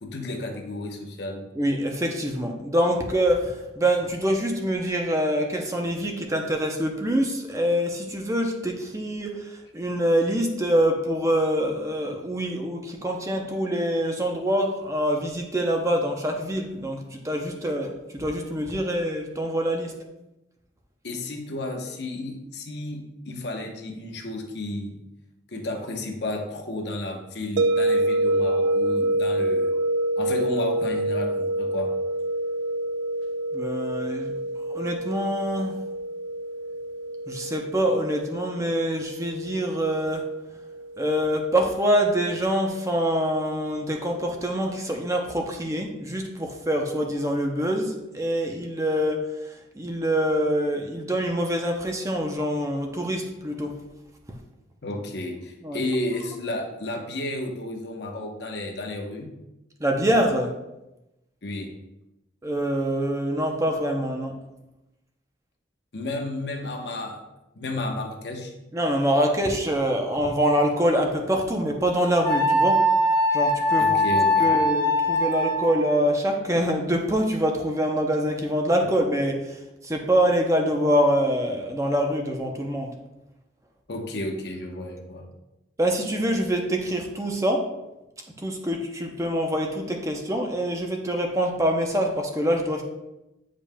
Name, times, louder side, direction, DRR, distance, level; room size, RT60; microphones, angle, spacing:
voice 1, 0.0-1.4 21.0-25.0 25.5-29.7 30.2-31.9 54.8-59.3 61.4-61.7 65.9-67.2 67.5-68.5 73.8-74.5 83.9-85.2, left 1 dB, 65° left, 3 dB, 0.9 m, -32 dB
voice 2, 1.6-19.9 33.5-34.3 34.7-35.8 37.3-40.3 41.0-53.8 55.6-55.8 59.8-60.5 62.4-64.3 68.7-72.8 73.3-74.0 74.4-82.9 85.8-87.7 88.4-92.8, equal, 15° right, 2 dB, 0.5 m, -25 dB
sound 1, 27.6-42.5, right 1 dB, 85° right, 0.3 m, -27 dB
Wind instrument woodwind instrument, 72.2-76.0, left 1 dB, 15° left, 1.3 m, -21 dB
8.5 x 5.1 x 2.2 m, 0.96 s
head